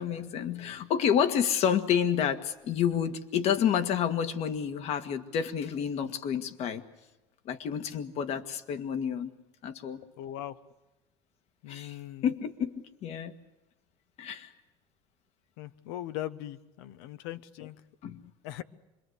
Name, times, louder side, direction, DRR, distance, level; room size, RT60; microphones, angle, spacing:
voice 1, 0.0-6.8 7.5-9.3 9.6-10.0 11.7-12.7 13.0-13.4 14.2-14.5 18.0-18.2, left 8 dB, 60° left, 10 dB, 1.8 m, -29 dB
voice 2, 10.2-10.6 11.6-12.3 15.6-17.8 18.4-18.6, left 13 dB, 85° left, 12 dB, 1.1 m, -39 dB
25.5 x 22.0 x 8.1 m, 1.0 s
supercardioid pair, 110°, 12 cm